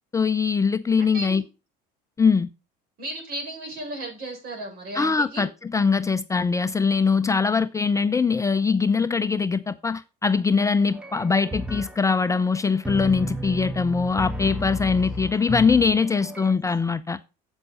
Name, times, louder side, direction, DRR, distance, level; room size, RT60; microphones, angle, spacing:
voice 1, 0.1-1.4 2.2-2.5 4.9-17.2, left 5 dB, 15° left, 0.5 m, -22 dB
voice 2, 1.0-1.4 3.0-5.4 15.2-15.3, right 1 dB, 55° right, 7.1 m, -35 dB
sound 1, 10.9-16.6, equal, 5° right, 1.1 m, -33 dB
8.4 x 8.0 x 5.5 m
supercardioid pair, 105°, 18 cm